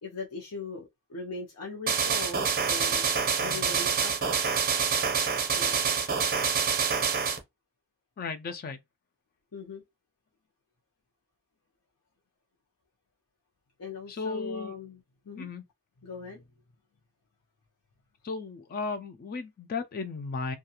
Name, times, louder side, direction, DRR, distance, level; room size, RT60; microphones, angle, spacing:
voice 1, 0.0-3.1 3.4-4.7 5.5-5.8 9.5-9.8 13.8-15.0 15.3-15.5 16.0-16.4, left 3 dB, 75° left, 0.6 m, -40 dB
sound 1, 1.9-7.4, right 6 dB, 40° right, 0.6 m, -26 dB
voice 2, 3.4-3.7 8.2-8.8 14.1-14.7 15.4-15.6 18.2-20.6, left 4 dB, 40° left, 0.3 m, -35 dB
2.4 x 2.3 x 2.8 m
head